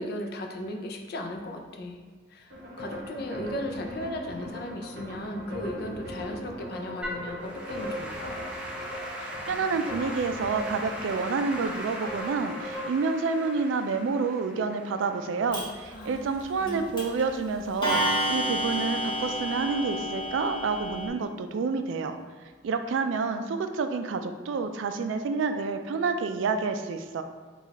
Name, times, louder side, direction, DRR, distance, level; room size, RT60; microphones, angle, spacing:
voice 1, 0.0-2.0 2.3-8.4 15.9-16.2 16.6-16.8, left 1 dB, 55° left, 3 dB, 0.4 m, -36 dB
sound 1, 2.5-14.2, equal, 55° right, 0.8 m, -39 dB
Applause / Keyboard (musical), 7.0-16.4, equal, 5° right, 0.5 m, -40 dB
voice 2, 9.2-22.2 22.6-27.2, right 4 dB, 75° right, 8 dB, 0.3 m, -29 dB
Clock, 15.5-15.6 16.7-16.8 17.0-17.2 17.8-21.1, equal, 25° left, 0.8 m, -29 dB
3.9 x 2.3 x 4.0 m, 1.5 s
head